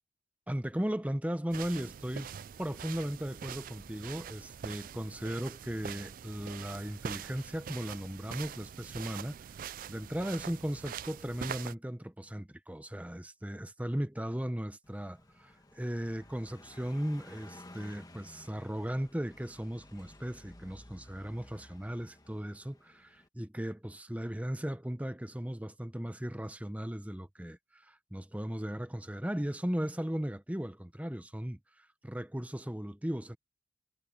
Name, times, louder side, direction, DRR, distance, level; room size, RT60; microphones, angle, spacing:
voice 1, 0.5-2.3 2.6-9.4 9.9-33.4, equal, 10° right, 0.8 m, -37 dB
sound 1, 1.5-11.7, right 8 dB, 45° right, 0.4 m, -44 dB
Car passing by, 14.8-23.3, left 1 dB, 20° left, 1.5 m, -54 dB
head